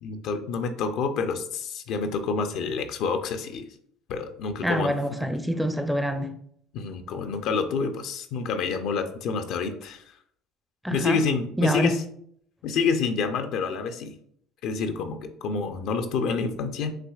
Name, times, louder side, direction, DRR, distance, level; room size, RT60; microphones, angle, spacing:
voice 1, 0.0-3.7 4.1-4.9 6.7-10.0 10.9-12.0 12.6-14.1 14.6-17.0, left 5 dB, 65° left, 0.5 m, -28 dB
voice 2, 4.6-6.4 10.8-11.2 11.6-11.9, equal, 5° right, 0.5 m, -26 dB
5.8 x 2.8 x 2.3 m
supercardioid pair, 80°, 0 cm